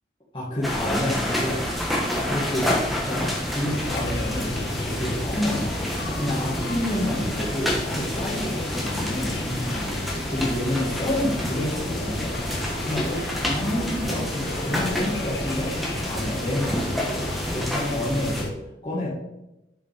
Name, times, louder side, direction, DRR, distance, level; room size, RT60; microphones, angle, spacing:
voice 1, 0.3-1.6 2.2-5.8 6.2-9.9 10.3-12.4 12.8-13.2 13.5-15.7 16.1-18.5 18.8-19.1, left 1 dB, 30° left, -9 dB, 1.9 m, -29 dB
sound 1, 0.6-18.4, left 1 dB, ahead, 1.2 m, -29 dB
sound 2, 3.7-18.5, left 2 dB, 60° left, 0.7 m, -34 dB
10.0 x 5.2 x 3.6 m, 0.93 s
head